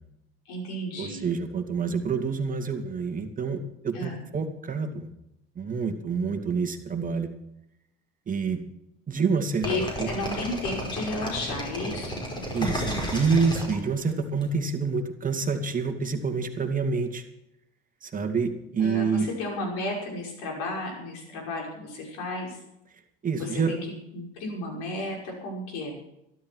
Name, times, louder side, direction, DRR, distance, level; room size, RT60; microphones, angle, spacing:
voice 1, 0.5-1.3 3.9-4.2 9.6-12.2 18.8-22.6 23.4-26.0, left 2 dB, 65° left, 1 dB, 5.9 m, -33 dB
voice 2, 1.0-5.1 5.6-7.3 8.3-8.6 9.1-10.1 12.5-17.2 18.0-19.3 23.2-23.7, right 5 dB, 30° right, 6 dB, 2.4 m, -27 dB
sound 1, 9.6-14.4, equal, 15° left, 5.3 m, -32 dB
13.0 x 13.0 x 6.3 m, 0.83 s
hypercardioid pair, 80°, 29 cm